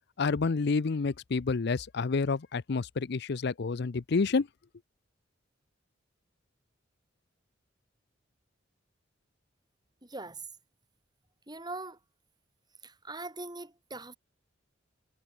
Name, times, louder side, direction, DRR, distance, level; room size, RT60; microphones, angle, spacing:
voice 1, 0.2-4.5, left 4 dB, 60° left, 0.6 m, -29 dB
voice 2, 10.0-10.5 11.5-12.0 12.8-14.2, right 2 dB, 20° right, 6.5 m, -41 dB
head